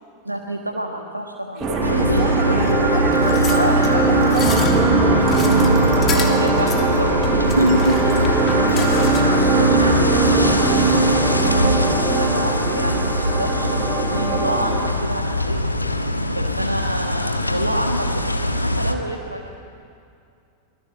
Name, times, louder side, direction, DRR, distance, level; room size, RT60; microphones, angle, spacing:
voice 1, 0.2-1.6 1.9-2.4 3.0-3.1 3.5-3.8 6.0-7.9 9.6-15.6 16.3-19.5, right 1 dB, 85° right, 2 dB, 1.4 m, -27 dB
voice 2, 1.5-4.8 7.4-7.9 8.4-9.9 16.4-16.7, right 6 dB, 40° right, 1 dB, 3.2 m, -32 dB
sound 1, 1.6-14.9, right 3 dB, 10° right, 7.1 m, -19 dB
sound 2, 1.8-19.0, left 1 dB, 85° left, 1.4 m, -23 dB
sound 3, 3.1-9.5 9.9-10.0, left 6 dB, 30° left, 2.9 m, -32 dB
25.0 x 19.0 x 8.4 m, 2.4 s
figure-of-eight pair, 90°, 0 cm